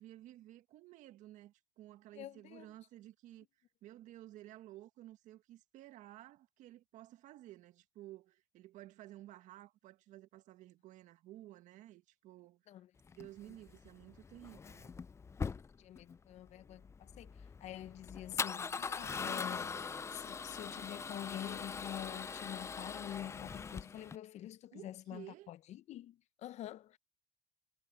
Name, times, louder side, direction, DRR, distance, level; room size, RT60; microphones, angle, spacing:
voice 1, 0.0-3.5 3.8-12.8 13.2-14.9 24.7-25.5, right 15 dB, 60° right, 1.7 m, -54 dB
voice 2, 2.1-2.7 12.7-12.9 15.8-27.0, left 12 dB, 50° left, 0.9 m, -47 dB
Male speech man speaking / Car / Engine starting, 13.1-24.2, left 5 dB, 20° left, 0.5 m, -42 dB
supercardioid pair, 95°, 15 cm